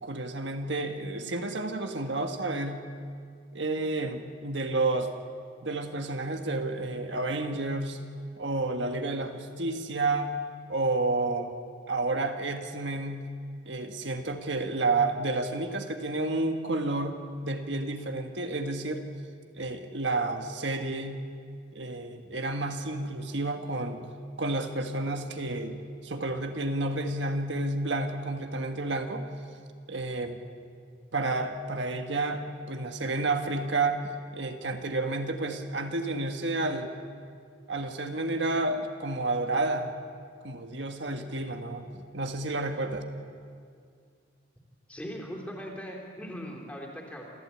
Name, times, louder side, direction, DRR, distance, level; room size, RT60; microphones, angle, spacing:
voice 1, 0.0-2.8 3.5-5.1 5.6-8.0 8.4-10.3 10.7-11.5 11.9-13.3 13.6-19.0 19.6-21.2 21.7-24.1 24.4-25.8 26.0-29.2 29.9-30.4 31.1-34.0 34.3-36.9 37.7-39.9 40.4-43.0, right 2 dB, 70° right, 5 dB, 1.6 m, -30 dB
voice 2, 44.9-47.2, equal, 10° left, -1 dB, 3.6 m, -39 dB
27.5 x 15.0 x 8.6 m, 2.2 s
head